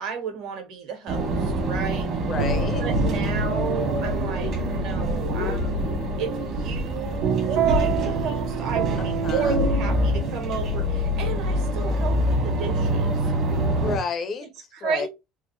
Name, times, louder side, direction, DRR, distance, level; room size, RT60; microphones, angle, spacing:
voice 1, 0.0-2.1 2.8-5.7 6.2-13.1 14.4-15.1, right 6 dB, 55° right, 1.5 m, -33 dB
sound 1, 1.1-14.0, equal, 40° right, 1.3 m, -25 dB
voice 2, 2.3-2.9 9.0-9.6 13.8-14.5 14.8-15.1, left 5 dB, 30° left, 0.5 m, -31 dB
sound 2, 2.4-13.0, right 5 dB, 70° right, 1.2 m, -30 dB
3.5 x 3.2 x 3.2 m
cardioid pair, 175°, 0 cm